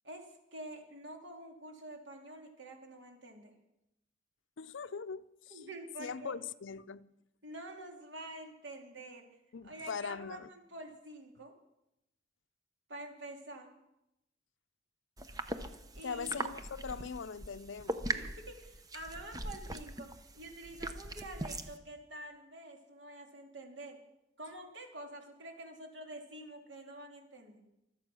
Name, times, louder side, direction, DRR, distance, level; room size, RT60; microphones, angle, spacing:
voice 1, 0.0-3.5 5.5-6.3 7.4-9.3 9.6-11.5 12.9-13.7 15.9-16.4 18.1-24.0 24.4-27.6, right 1 dB, 70° right, 2.7 m, -48 dB
voice 2, 4.6-5.7 6.0-7.1 9.5-10.5 16.0-18.0, left 6 dB, 80° left, 0.5 m, -41 dB
sound 1, 15.2-21.8, right 2 dB, 20° right, 0.8 m, -41 dB
24.5 x 8.2 x 6.2 m
head